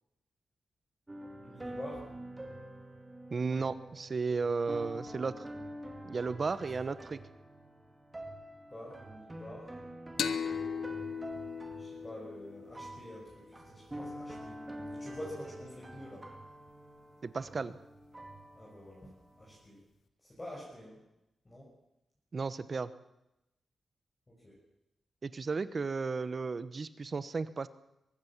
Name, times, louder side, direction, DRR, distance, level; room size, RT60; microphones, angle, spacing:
sound 1, 1.1-19.6, right 1 dB, 15° right, 2.4 m, -47 dB
voice 1, 1.4-2.0 8.7-9.7 11.8-14.6 14.9-16.3 18.6-19.1 19.4-19.8 20.2-21.0 21.4-21.7 24.3-24.6, left 1 dB, 15° left, -5 dB, 6.2 m, -47 dB
voice 2, 3.3-5.5 6.0-7.2 17.2-17.8 22.3-22.9 25.2-27.7, right 4 dB, 35° right, 14 dB, 1.1 m, -34 dB
sound 2, 10.2-13.6, left 7 dB, 85° left, 1.4 m, -38 dB
23.5 x 21.0 x 7.4 m, 0.89 s
wide cardioid pair, 170°, 0 cm